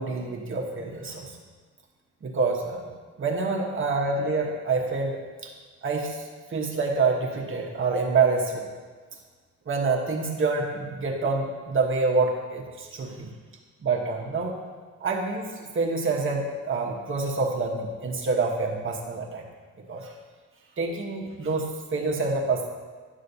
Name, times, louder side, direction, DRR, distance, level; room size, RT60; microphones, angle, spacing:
voice 1, 0.0-1.4 2.2-2.9 3.2-5.5 5.8-6.2 6.5-8.6 9.7-13.3 13.8-14.6 15.0-19.4 19.9-20.1 20.8-22.7, right 4 dB, 45° right, -1 dB, 1.1 m, -27 dB
10.5 x 6.3 x 2.7 m, 1.4 s
cardioid pair, 90°, 30 cm